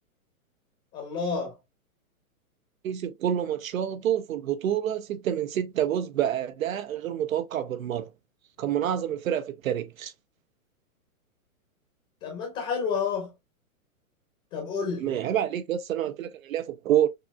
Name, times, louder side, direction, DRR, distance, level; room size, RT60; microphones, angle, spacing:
voice 1, 0.9-1.5 12.2-13.3 14.5-15.1, left 5 dB, 15° left, 0.8 m, -30 dB
voice 2, 2.8-8.1 8.6-10.1 15.0-17.1, right 10 dB, 70° right, 0.6 m, -28 dB
6.4 x 2.4 x 2.3 m
hypercardioid pair, 165°, 43 cm